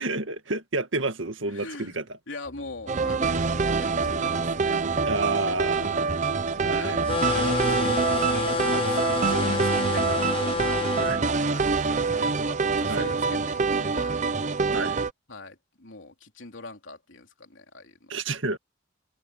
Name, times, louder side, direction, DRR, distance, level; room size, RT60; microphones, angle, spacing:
voice 1, 0.0-2.2 5.1-6.0 6.6-7.0 10.9-11.2 12.9-13.1 14.7-15.0 18.1-18.6, right 3 dB, 75° right, 1.9 m, -30 dB
voice 2, 1.5-2.0 2.3-5.1 5.8-6.3 6.6-7.0 7.6-8.2 8.4-10.6 11.0-14.2 15.3-18.1, left 3 dB, 70° left, 3.6 m, -42 dB
sound 1, 2.4-13.7, equal, 55° left, 7.0 m, -50 dB
sound 2, 2.9-15.1, right 4 dB, 40° right, 0.7 m, -25 dB
sound 3, 7.1-11.2, left 4 dB, 25° left, 0.7 m, -28 dB
head